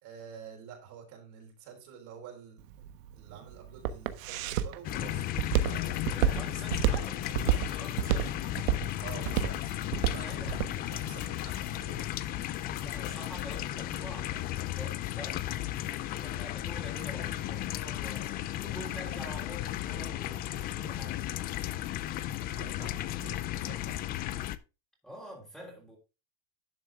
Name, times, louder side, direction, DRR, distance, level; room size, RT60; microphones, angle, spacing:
voice 1, 0.0-5.3 5.6-6.3 9.0-9.7 10.0-12.1 20.6-20.7 22.4-24.0, right 8 dB, 45° right, 3.9 m, -49 dB
Walk footsteps, 2.6-10.8, right 10 dB, 80° right, 1.3 m, -29 dB
sound 1, 4.8-24.6, left 14 dB, 25° left, 0.4 m, -35 dB
voice 2, 6.1-8.7 10.2-10.6 12.8-15.5 16.2-21.2 25.0-26.0, equal, ahead, 3.3 m, -46 dB
sound 2, 6.8-13.8, left 10 dB, 90° left, 6.0 m, -48 dB
11.5 x 6.9 x 3.4 m
supercardioid pair, 160°, 40 cm